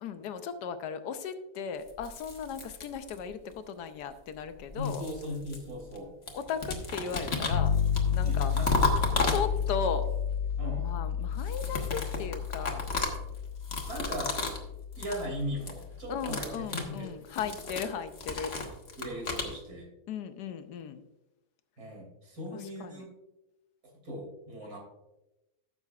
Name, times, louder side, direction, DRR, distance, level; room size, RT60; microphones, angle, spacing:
voice 1, 0.0-5.0 6.3-7.7 8.1-8.5 9.3-10.0 10.8-12.8 16.1-18.5 20.1-21.0 22.5-23.1, left 6 dB, 85° left, 10 dB, 1.3 m, -36 dB
sound 1, 1.9-3.5 4.4-6.0 6.3-9.9 11.3-14.7 14.9-15.3 15.5-15.8 16.1-19.5, left 3 dB, 40° left, 1.4 m, -34 dB
voice 2, 4.7-6.1 8.2-8.8 10.6-10.9 13.9-14.4 15.0-17.1 17.3-17.5 19.0-19.9 21.8-23.1 24.0-24.8, left 1 dB, 65° right, 0 dB, 3.3 m, -38 dB
sound 2, 7.5-16.5, left 7 dB, 65° left, 1.1 m, -31 dB
14.5 x 6.9 x 2.4 m, 0.95 s
omnidirectional pair, 1.7 m